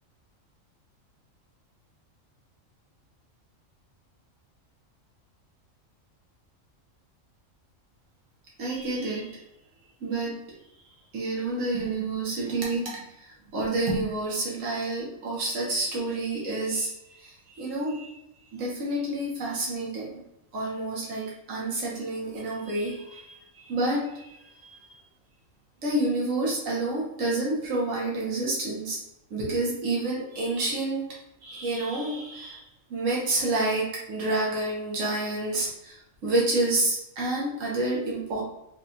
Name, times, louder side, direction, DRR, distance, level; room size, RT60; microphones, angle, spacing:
voice 1, 8.6-9.3 10.0-10.3 11.1-18.1 18.5-20.2 20.5-24.8 25.8-29.0 29.3-31.1 31.4-32.6 32.9-38.4, right 2 dB, 75° right, -4 dB, 1.4 m, -29 dB
4.7 x 2.3 x 2.7 m, 0.84 s
omnidirectional pair, 1.4 m